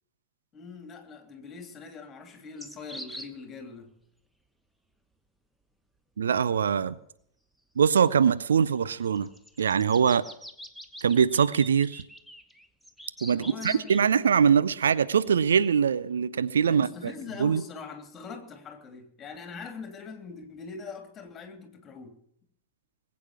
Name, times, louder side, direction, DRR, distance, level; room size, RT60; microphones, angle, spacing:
voice 1, 0.5-3.9 13.3-14.3 16.7-22.2, left 4 dB, 25° left, 3.0 m, -42 dB
sound 1, 2.6-3.3 8.1-8.2 9.0-14.0, equal, ahead, 1.2 m, -44 dB
voice 2, 6.2-7.0 7.8-9.3 9.6-10.2 11.0-12.0 13.2-17.1 17.4-17.6, right 7 dB, 70° right, 0.5 m, -23 dB
20.0 x 8.5 x 7.1 m
figure-of-eight pair, 90°, 0 cm